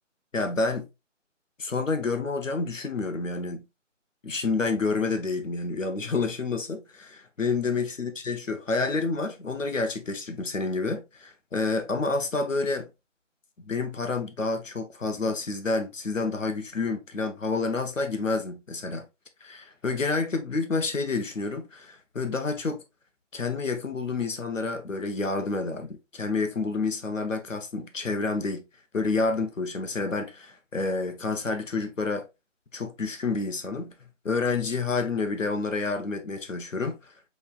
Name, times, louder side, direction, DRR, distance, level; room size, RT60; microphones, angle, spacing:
voice 1, 0.3-0.9 1.6-3.6 4.2-12.9 13.6-19.1 19.4-22.8 23.3-28.6 28.9-32.3 32.7-33.9 34.2-37.0, left 3 dB, 80° left, 1.2 m, -29 dB
5.5 x 3.6 x 2.4 m
figure-of-eight pair, 175°, 38 cm